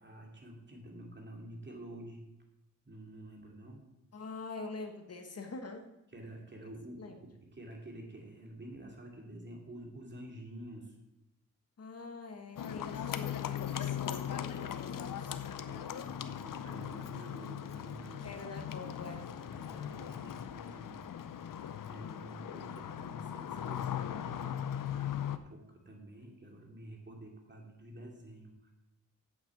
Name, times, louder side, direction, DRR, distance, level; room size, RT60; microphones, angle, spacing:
voice 1, 0.0-2.2 2.8-3.9 6.1-11.0 15.7-18.4 19.5-24.6 24.9-28.7, right 1 dB, 35° right, 1 dB, 2.6 m, -49 dB
voice 2, 4.1-5.8 7.0-7.2 11.8-15.5 18.2-19.3, left 3 dB, 50° left, 5 dB, 1.4 m, -45 dB
Livestock farm animals working animals, 12.6-25.4, left 9 dB, 80° left, 0.7 m, -39 dB
8.2 x 7.3 x 7.4 m, 0.88 s
wide cardioid pair, 100°, 32 cm